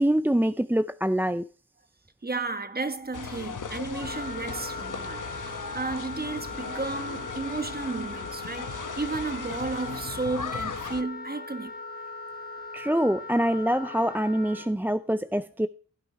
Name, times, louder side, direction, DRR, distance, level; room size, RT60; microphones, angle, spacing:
voice 1, 0.0-1.5 12.7-15.7, right 1 dB, 5° right, 0.4 m, -25 dB
voice 2, 2.2-11.7, right 3 dB, 30° right, 1.4 m, -33 dB
sound 1, 3.1-11.0, left 5 dB, 65° left, 1.2 m, -37 dB
Wind instrument woodwind instrument, 4.0-14.7, left 2 dB, 25° left, 2.7 m, -39 dB
16.5 x 9.4 x 3.5 m
wide cardioid pair, 100°, 33 cm